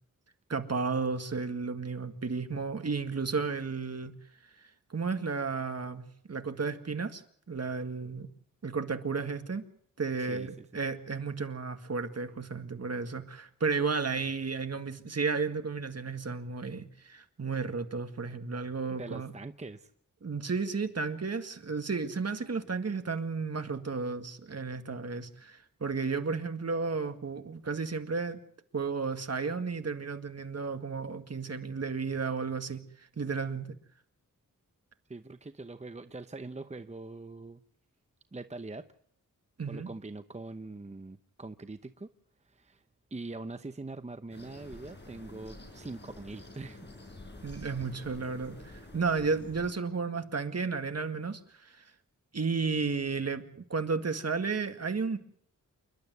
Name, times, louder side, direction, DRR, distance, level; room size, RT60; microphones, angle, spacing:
voice 1, 0.5-4.1 4.9-7.2 7.5-8.3 8.6-9.6 10.0-19.3 20.2-28.4 28.7-32.8 33.2-33.7 39.6-39.9 47.4-51.8 52.3-55.2, right 4 dB, 50° right, 8 dB, 2.0 m, -33 dB
voice 2, 10.3-10.7 18.9-19.9 35.1-37.6 38.3-38.8 39.7-42.1 42.4-42.8 43.1-46.8, right 3 dB, 20° right, 10 dB, 0.8 m, -43 dB
sound 1, 44.3-49.7, left 2 dB, 30° left, 5.2 m, -49 dB
28.5 x 12.0 x 9.3 m, 0.65 s
wide cardioid pair, 110°, 33 cm